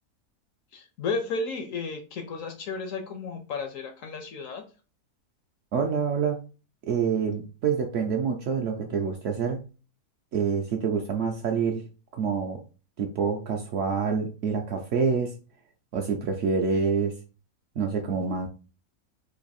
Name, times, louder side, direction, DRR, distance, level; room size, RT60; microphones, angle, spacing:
voice 1, 0.7-4.6, left 4 dB, 70° left, 7 dB, 0.8 m, -33 dB
voice 2, 5.7-6.4 6.9-9.6 10.3-11.8 12.1-12.6 13.0-15.4 15.9-17.1 17.8-18.5, right 6 dB, 70° right, 2 dB, 0.7 m, -27 dB
3.2 x 2.5 x 4.0 m, 0.34 s
omnidirectional pair, 1.7 m